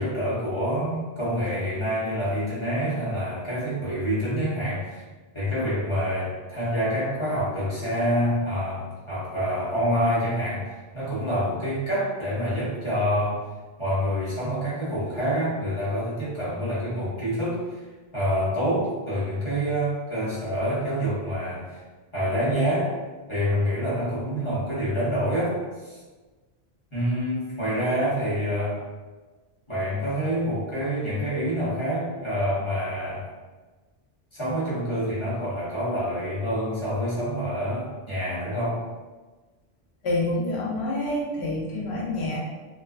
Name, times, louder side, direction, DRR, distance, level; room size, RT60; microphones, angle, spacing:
voice 1, 0.0-5.0 5.3-13.4 13.8-17.6 18.1-21.8 22.1-22.9 23.3-25.6 25.8-26.0 26.9-28.8 29.7-33.3 34.3-38.8, equal, 30° left, -11 dB, 0.9 m, -27 dB
voice 2, 40.0-42.4, left 1 dB, 85° left, -3 dB, 0.9 m, -27 dB
2.3 x 2.3 x 2.3 m, 1.3 s
omnidirectional pair, 1.1 m